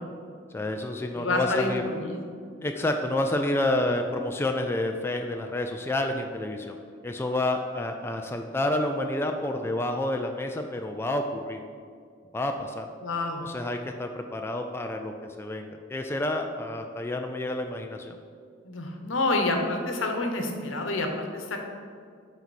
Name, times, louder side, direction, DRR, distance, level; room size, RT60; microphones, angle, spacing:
voice 1, 0.5-1.8 2.6-6.8 7.0-11.6 12.3-12.9 13.4-18.2, left 1 dB, 10° left, 4 dB, 0.3 m, -29 dB
voice 2, 1.2-2.2 13.0-13.5 18.6-21.6, left 2 dB, 75° left, 3 dB, 1.0 m, -28 dB
9.1 x 4.0 x 4.2 m, 2.1 s
head